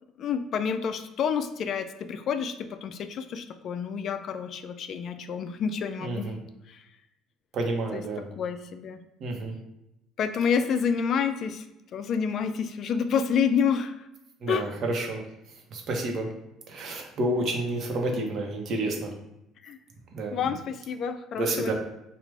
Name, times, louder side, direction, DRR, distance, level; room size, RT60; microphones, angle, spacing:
voice 1, 0.2-6.3 6.7-6.8 7.9-8.0 8.4-9.0 10.2-11.7 11.9-14.1 14.5-14.6 19.6-19.8 20.3-21.7, left 6 dB, 55° left, 10 dB, 0.3 m, -28 dB
voice 2, 6.0-6.4 7.5-8.2 9.2-9.5 14.4-15.2 15.7-16.3 16.7-19.1 20.1-20.4 21.3-21.7, right 2 dB, 50° right, 2 dB, 0.9 m, -29 dB
4.6 x 2.4 x 3.3 m, 0.88 s
cardioid pair, 110°, 0 cm